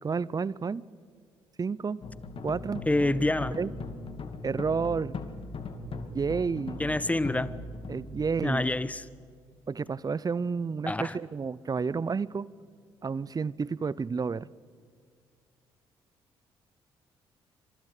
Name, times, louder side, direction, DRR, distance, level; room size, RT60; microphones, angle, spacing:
voice 1, 0.0-0.8 1.6-2.0 2.4-2.8 3.5-3.7 4.4-5.2 6.1-6.8 7.9-8.7 9.7-12.5 13.0-14.5, right 5 dB, 30° right, 22 dB, 0.7 m, -30 dB
sound 1, 2.0-9.3, left 3 dB, 45° left, 2.5 m, -39 dB
voice 2, 2.9-3.6 6.8-7.5 8.4-9.0 10.9-11.1, left 2 dB, 10° left, 18 dB, 1.0 m, -27 dB
28.0 x 25.5 x 5.0 m, 2.1 s
hypercardioid pair, 45°, 12 cm